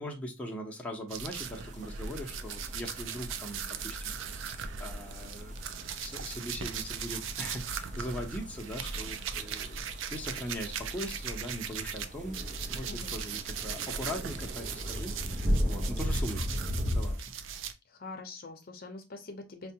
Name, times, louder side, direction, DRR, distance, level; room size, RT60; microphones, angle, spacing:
voice 1, 0.0-5.6 6.0-9.8 10.1-12.4 12.7-16.6 16.9-17.3, equal, 5° left, 0 dB, 0.7 m, -40 dB
sound 1, 1.1-12.0 12.3-17.7, right 6 dB, 85° right, 0.4 m, -39 dB
sound 2, 1.4-17.1, equal, 40° right, 0.7 m, -37 dB
voice 2, 17.9-19.7, left 3 dB, 50° left, 5 dB, 0.6 m, -44 dB
4.6 x 2.2 x 2.7 m, 0.25 s
head